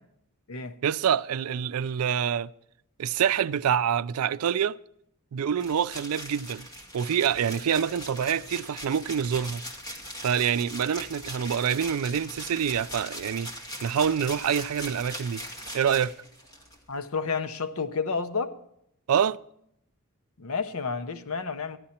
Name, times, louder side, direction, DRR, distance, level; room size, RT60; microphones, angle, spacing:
voice 1, 0.8-2.5 3.0-4.8 5.3-6.7 6.9-9.6 10.2-13.5 13.8-15.4 15.7-16.1 19.1-19.4, right 8 dB, 90° right, 0.4 m, -26 dB
sound 1, 5.6-16.8, equal, 20° left, 2.1 m, -40 dB
voice 2, 16.9-18.6 20.4-21.8, left 5 dB, 75° left, 0.8 m, -30 dB
14.0 x 11.5 x 4.3 m
head